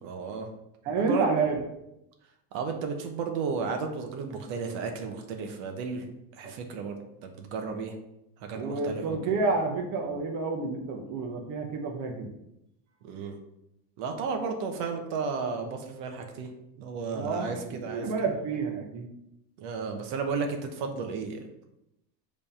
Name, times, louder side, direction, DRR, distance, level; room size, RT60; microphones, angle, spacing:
voice 1, 0.0-0.5 1.0-1.2 2.5-6.1 6.4-8.0 8.4-9.3 13.0-13.4 14.0-16.5 16.8-18.1 19.6-21.4, right 5 dB, 65° right, 4 dB, 1.1 m, -33 dB
voice 2, 0.8-1.6 6.4-6.5 8.5-12.3 17.1-17.5 17.9-19.1, right 4 dB, 40° right, 1 dB, 0.9 m, -29 dB
5.1 x 3.5 x 5.6 m, 0.85 s
cardioid pair, 150°, 45 cm